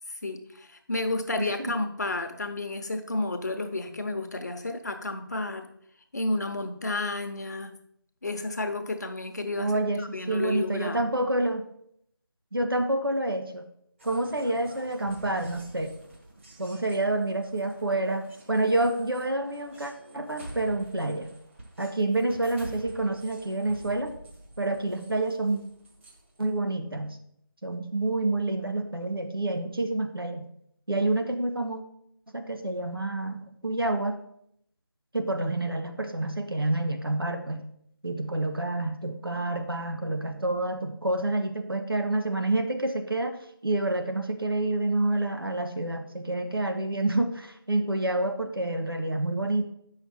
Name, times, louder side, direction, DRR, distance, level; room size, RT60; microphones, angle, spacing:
voice 1, 0.1-5.7 6.1-7.7 8.2-9.7 10.0-11.0, left 2 dB, 50° left, 6 dB, 0.9 m, -31 dB
voice 2, 9.6-11.7 12.5-13.7 14.0-15.9 16.6-21.3 21.8-24.2 24.6-25.6 26.4-27.2 27.6-30.5 30.9-31.8 32.3-34.2 35.1-37.7 38.0-49.7, right 2 dB, 85° right, 5 dB, 1.3 m, -28 dB
sound 1, 14.0-26.5, right 1 dB, 35° right, 1.4 m, -48 dB
8.1 x 5.7 x 4.3 m, 0.71 s
figure-of-eight pair, 165°, 12 cm